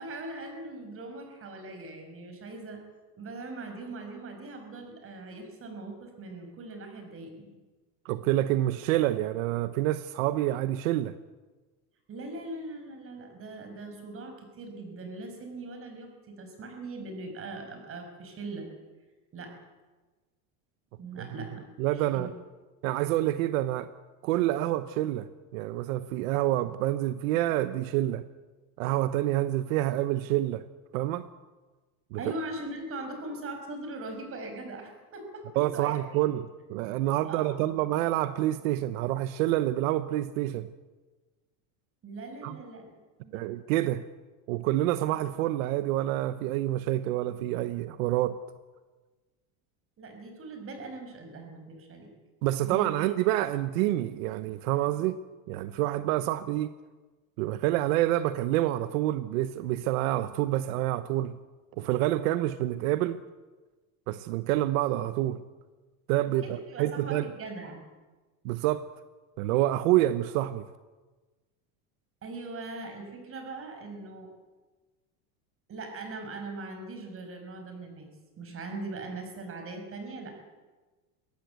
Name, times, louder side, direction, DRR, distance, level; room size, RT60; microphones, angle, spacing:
voice 1, 0.0-2.8 3.2-7.5 12.1-18.7 19.3-19.6 21.0-22.3 32.2-36.0 37.2-37.6 42.0-42.9 43.2-43.4 50.0-52.1 52.6-52.9 66.4-67.8 72.2-74.3 75.7-78.1 78.4-80.4, right 2 dB, 35° right, 5 dB, 6.0 m, -40 dB
voice 2, 8.0-11.1 21.2-21.3 21.8-22.3 22.8-23.9 24.2-25.3 25.5-28.2 28.8-30.6 30.9-31.3 32.1-32.2 35.6-40.7 42.4-42.6 43.3-44.0 44.5-48.4 52.4-55.2 55.5-56.7 57.4-61.4 61.8-63.2 64.1-65.4 66.1-67.2 68.4-68.9 69.4-70.7, right 14 dB, 85° right, 12 dB, 1.0 m, -27 dB
22.5 x 17.0 x 8.2 m, 1.3 s
supercardioid pair, 140°, 40 cm